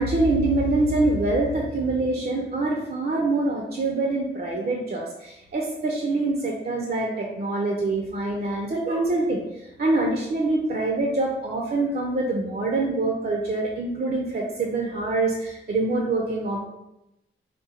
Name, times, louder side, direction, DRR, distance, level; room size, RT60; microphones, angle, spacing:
voice 1, 0.0-16.6, right 2 dB, 50° right, 0 dB, 0.5 m, -25 dB
3.7 x 2.1 x 4.1 m, 0.90 s
wide cardioid pair, 130°, 20 cm